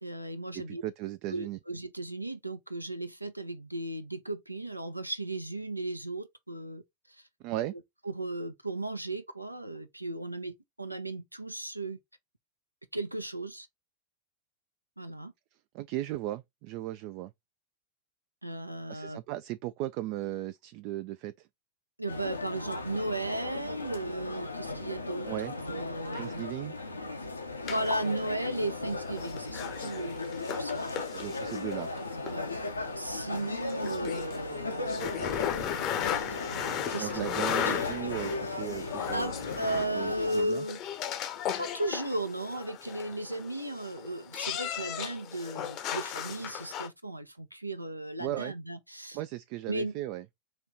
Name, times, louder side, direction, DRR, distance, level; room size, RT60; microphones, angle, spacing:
voice 1, 0.0-0.8 1.3-6.8 7.1-7.2 7.7-12.0 12.9-13.7 15.0-15.3 18.4-19.2 22.0-25.3 25.6-26.4 27.7-31.1 32.2-32.4 33.0-35.9 36.9-37.3 39.1-40.8 41.6-49.2 49.7-49.9, right 1 dB, 85° right, 0.6 m, -35 dB
voice 2, 0.5-1.6 7.4-7.7 15.7-17.3 18.9-21.5 25.3-25.5 26.1-26.7 31.1-31.9 37.0-39.3 40.0-40.6 48.2-48.5 49.1-50.2, right 15 dB, 45° right, 0.3 m, -36 dB
sound 1, 22.1-40.4, left 2 dB, 80° left, 0.8 m, -37 dB
sound 2, 27.7-46.9, left 9 dB, 35° left, 0.7 m, -37 dB
4.4 x 3.0 x 3.7 m
figure-of-eight pair, 90°, 0 cm